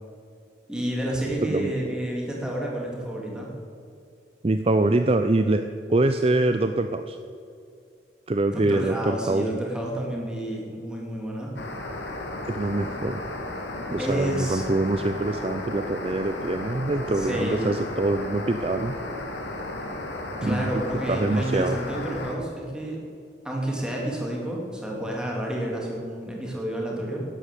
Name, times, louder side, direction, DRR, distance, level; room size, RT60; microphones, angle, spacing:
voice 1, 0.7-3.5 8.5-11.5 14.0-14.6 17.1-17.7 20.4-23.0 23.4-27.2, right 1 dB, 5° right, -2 dB, 3.0 m, -30 dB
voice 2, 1.4-1.7 4.4-5.6 5.9-7.2 8.3-9.6 12.4-13.2 13.9-18.9 20.4-20.7 21.1-21.8, right 2 dB, 30° right, 8 dB, 0.5 m, -24 dB
sound 1, 11.6-22.4, left 2 dB, 80° left, 2.3 m, -34 dB
12.0 x 11.0 x 8.4 m, 2.5 s
head